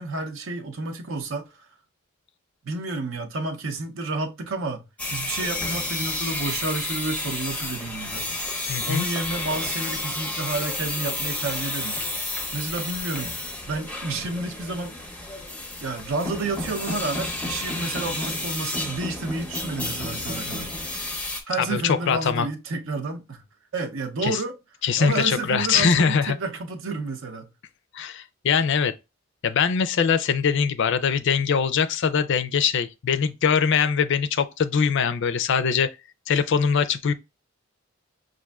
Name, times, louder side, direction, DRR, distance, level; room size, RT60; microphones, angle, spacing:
voice 1, 0.0-1.5 2.6-8.3 8.9-12.0 12.5-13.3 13.7-15.0 15.8-20.7 21.5-23.4 23.7-24.5 25.0-27.5, right 3 dB, 65° right, 0.7 m, -30 dB
sound 1, 5.0-21.4, left 2 dB, 5° left, 0.6 m, -31 dB
voice 2, 8.7-9.0 21.6-22.5 24.2-24.4 24.8-26.4 27.9-28.9 29.4-35.9 36.3-37.1, left 6 dB, 55° left, 0.4 m, -22 dB
6.0 x 2.5 x 2.3 m
head